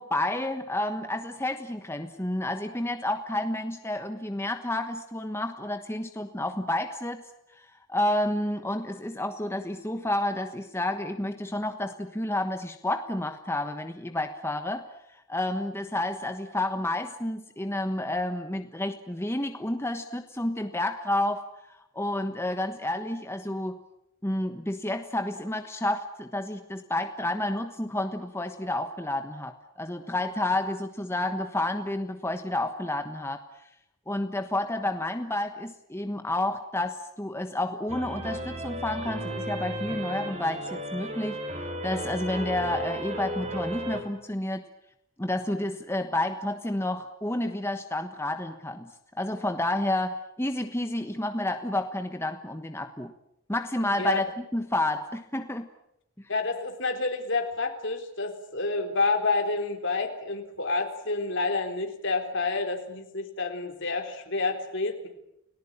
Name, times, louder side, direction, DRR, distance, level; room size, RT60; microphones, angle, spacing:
voice 1, 0.0-7.2 7.6-14.9 15.3-23.8 24.2-33.4 34.1-41.4 41.8-44.6 45.2-48.9 49.2-53.1 53.5-55.7, left 1 dB, 10° left, 6 dB, 1.3 m, -30 dB
sound 1, 37.9-44.0, right 1 dB, 30° right, 3.9 m, -34 dB
voice 2, 56.3-65.1, left 3 dB, 60° left, 5 dB, 3.9 m, -29 dB
30.0 x 18.5 x 8.9 m, 0.81 s
head